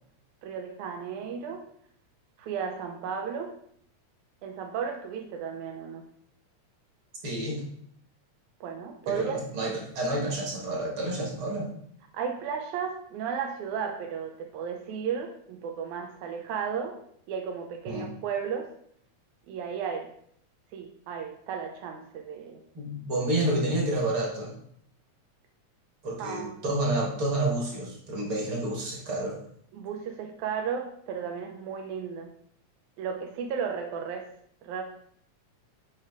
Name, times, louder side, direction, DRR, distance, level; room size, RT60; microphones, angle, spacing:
voice 1, 0.4-1.6 2.4-3.5 4.4-6.0 8.6-9.4 12.1-17.0 17.3-18.7 19.5-20.1 20.7-22.6 26.2-26.5 29.7-32.3 33.0-34.3 34.6-34.8, right 7 dB, 85° right, 3 dB, 2.1 m, -34 dB
voice 2, 7.2-7.6 9.1-11.7 17.9-18.1 22.7-24.5 26.0-29.4, right 1 dB, 50° right, -1 dB, 2.2 m, -29 dB
8.3 x 4.8 x 3.6 m, 0.66 s
omnidirectional pair, 3.3 m